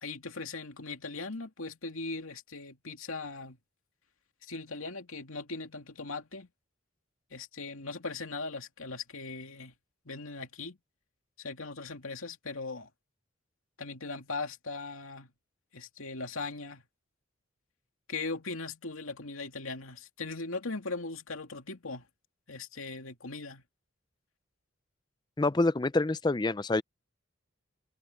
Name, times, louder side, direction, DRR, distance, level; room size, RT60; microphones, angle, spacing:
voice 1, 0.0-3.6 4.4-6.5 7.3-9.7 10.0-10.8 11.4-12.9 13.8-15.3 15.7-16.8 18.1-22.1 22.5-23.6, left 3 dB, 90° left, 2.6 m, -39 dB
voice 2, 25.4-26.8, left 2 dB, 20° left, 0.4 m, -26 dB
head